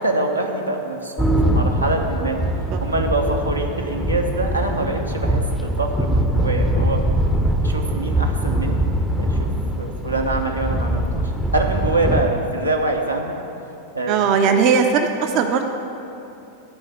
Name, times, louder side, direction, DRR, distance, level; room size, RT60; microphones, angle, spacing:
voice 1, 0.0-2.4 2.8-7.0 7.6-8.8 9.2-9.5 9.8-13.4 13.9-14.2, right 2 dB, 85° right, 1 dB, 0.9 m, -24 dB
sound 1, 1.2-12.2, right 1 dB, ahead, 0.6 m, -22 dB
voice 2, 14.1-15.7, right 6 dB, 40° right, 5 dB, 0.6 m, -18 dB
10.5 x 4.8 x 8.0 m, 2.7 s
figure-of-eight pair, 90°, 0 cm